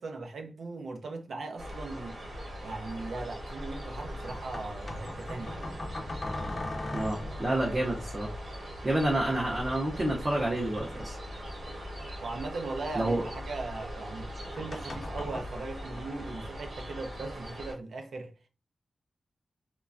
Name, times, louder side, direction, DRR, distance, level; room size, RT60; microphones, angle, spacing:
voice 1, 0.0-2.2 2.6-5.8 12.2-18.3, right 3 dB, 85° right, 0.5 m, -39 dB
sound 1, 1.6-17.7, equal, 60° right, 0.9 m, -41 dB
sound 2, 2.8-2.9 4.3-7.6 10.0-12.7 14.2-15.4, left 2 dB, 40° left, 0.4 m, -41 dB
voice 2, 6.9-8.3 8.8-11.2 12.9-13.3, right 1 dB, 25° right, 0.5 m, -29 dB
3.1 x 2.2 x 2.4 m
wide cardioid pair, 160°, 0 cm